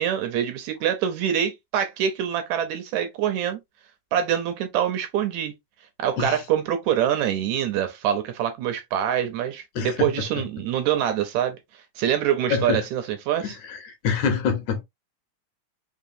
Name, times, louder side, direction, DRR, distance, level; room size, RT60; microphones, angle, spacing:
voice 1, 0.0-3.6 4.1-5.5 6.0-11.6 12.0-13.6, right 9 dB, 75° right, 1.9 m, -25 dB
voice 2, 9.8-10.1 12.5-12.8 13.4-14.8, left 6 dB, 75° left, 2.2 m, -26 dB
5.0 x 2.8 x 2.6 m
omnidirectional pair, 3.6 m